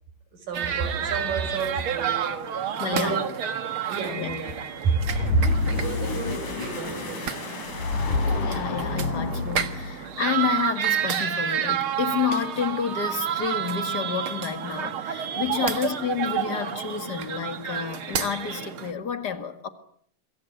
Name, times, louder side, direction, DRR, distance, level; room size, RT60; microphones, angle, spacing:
voice 1, 0.3-2.4 2.9-3.3 3.8-4.6 4.8-7.5 15.6-15.7, right 4 dB, 75° right, 7.7 m, -30 dB
sound 1, 0.5-18.9, right 9 dB, 50° right, 1.9 m, -30 dB
voice 2, 2.8-3.2 4.2-4.3 8.4-19.7, left 7 dB, 35° left, 2.0 m, -30 dB
sound 2, 5.0-10.1, left 3 dB, 65° left, 5.6 m, -28 dB
27.0 x 22.0 x 9.2 m
omnidirectional pair, 3.8 m